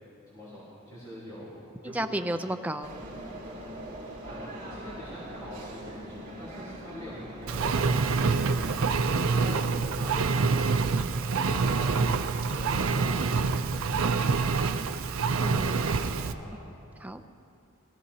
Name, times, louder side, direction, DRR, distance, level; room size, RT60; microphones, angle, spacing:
voice 1, 0.3-2.2 4.0-8.7 9.1-12.2 12.5-13.6 15.8-16.6, equal, 15° left, -9 dB, 3.3 m, -44 dB
voice 2, 1.9-2.9 15.4-16.0 17.0-17.2, right 1 dB, 5° right, 7 dB, 0.5 m, -33 dB
sound 1, 2.8-9.9, right 1 dB, 40° right, 2.6 m, -42 dB
Engine, 7.5-16.3, right 4 dB, 65° right, 0.5 m, -26 dB
21.5 x 14.5 x 2.8 m, 2.9 s
head